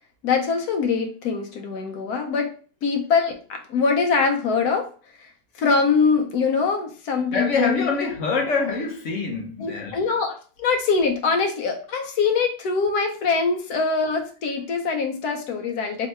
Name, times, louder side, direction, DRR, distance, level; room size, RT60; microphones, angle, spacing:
voice 1, 0.2-2.5 2.8-4.9 5.2-7.9 9.6-16.1, left 5 dB, 85° left, 1.2 m, -23 dB
voice 2, 7.3-10.0, left 4 dB, 60° left, 1.1 m, -25 dB
3.1 x 2.8 x 4.2 m
omnidirectional pair, 1.6 m